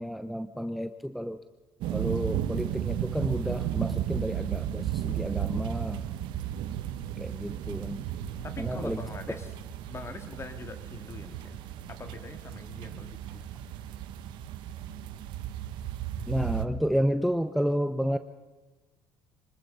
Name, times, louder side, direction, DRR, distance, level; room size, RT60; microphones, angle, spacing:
voice 1, 0.0-1.4 1.9-6.0 7.2-8.1 8.6-9.0 9.3-9.4 16.3-18.2, equal, ahead, 11 dB, 0.8 m, -31 dB
sound 1, 1.8-16.6, right 10 dB, 75° right, 1.2 m, -34 dB
voice 2, 8.4-9.5 9.9-11.6 11.9-13.5, left 3 dB, 30° left, 8 dB, 2.2 m, -43 dB
24.5 x 20.0 x 5.5 m, 1.2 s
supercardioid pair, 85°, 8 cm